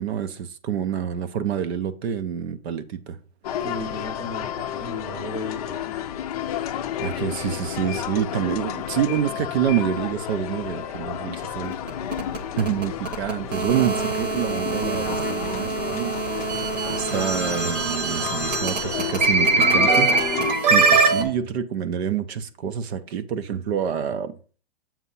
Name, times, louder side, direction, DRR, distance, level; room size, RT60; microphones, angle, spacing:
voice 1, 0.0-3.2 7.0-11.8 12.6-16.2 16.5-16.6 16.9-24.3, right 9 dB, 70° right, 0.8 m, -27 dB
sound 1, 3.4-20.5, left 10 dB, 35° left, 0.5 m, -31 dB
voice 2, 3.6-5.8, equal, 15° right, 0.8 m, -35 dB
sound 2, 11.7-21.2, right 4 dB, 40° right, 1.0 m, -23 dB
7.3 x 2.7 x 5.5 m
hypercardioid pair, 170°, 33 cm